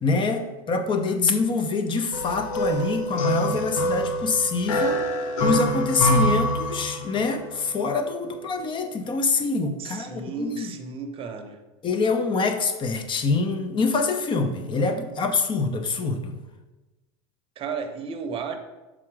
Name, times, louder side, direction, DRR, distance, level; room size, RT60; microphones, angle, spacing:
voice 1, 0.0-5.0 5.4-10.7 11.8-16.4, left 4 dB, 30° left, 7 dB, 0.7 m, -25 dB
sound 1, 2.1-7.3, equal, 90° left, 0.8 m, -25 dB
voice 2, 9.8-11.6 17.6-18.6, right 5 dB, 35° right, 6 dB, 0.8 m, -33 dB
5.9 x 3.7 x 4.7 m, 1.1 s
supercardioid pair, 120°, 16 cm